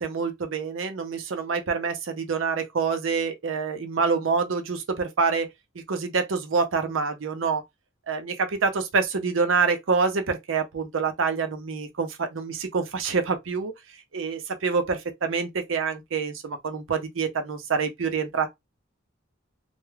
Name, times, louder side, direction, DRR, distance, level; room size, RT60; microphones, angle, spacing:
voice 1, 0.0-5.5 5.9-7.6 8.1-13.7 14.1-18.5, right 5 dB, 85° right, 0.6 m, -26 dB
2.3 x 2.1 x 3.2 m
head